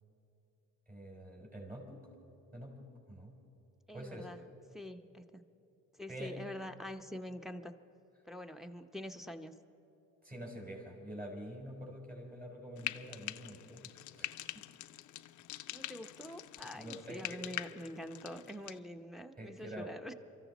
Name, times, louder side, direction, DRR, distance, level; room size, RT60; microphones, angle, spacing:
voice 1, 0.9-2.0 2.5-3.3 3.9-4.3 6.1-6.3 10.2-14.6 16.7-17.4 19.4-19.9, right 1 dB, 30° right, -1 dB, 4.7 m, -46 dB
voice 2, 3.9-5.4 5.9-7.7 8.2-9.5 15.7-20.1, equal, ahead, 5 dB, 0.8 m, -46 dB
Frying (food), 12.8-18.8, left 15 dB, 75° left, 0.5 m, -44 dB
24.5 x 14.0 x 4.1 m, 3.0 s
cardioid pair, 90°, 30 cm